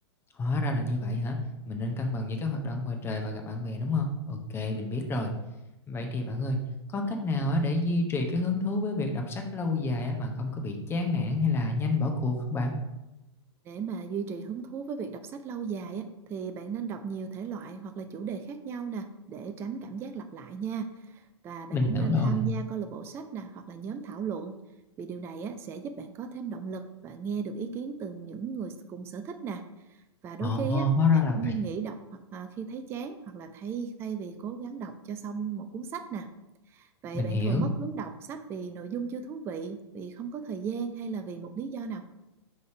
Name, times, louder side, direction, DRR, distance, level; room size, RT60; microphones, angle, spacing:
voice 1, 0.4-1.4 1.6-5.3 5.9-6.6 6.9-12.7 21.7-22.4 30.4-31.6 37.1-37.6, left 2 dB, 15° left, 3 dB, 0.8 m, -28 dB
voice 2, 13.7-24.6 25.0-29.7 30.2-30.9 31.1-36.3 36.7-42.0, right 6 dB, 15° right, 8 dB, 0.4 m, -36 dB
5.3 x 3.3 x 5.6 m, 0.96 s
figure-of-eight pair, 105°, 15 cm